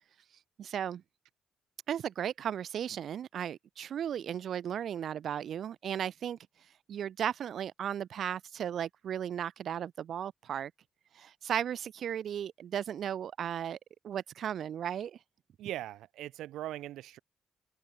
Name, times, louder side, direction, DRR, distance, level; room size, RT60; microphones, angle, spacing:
voice 1, 0.6-1.0 1.9-6.4 6.9-10.7 11.1-13.8 14.0-15.2, right 9 dB, 65° right, 4.4 m, -35 dB
voice 2, 15.6-17.2, right 14 dB, 80° right, 8.0 m, -40 dB
supercardioid pair, 60°, 0 cm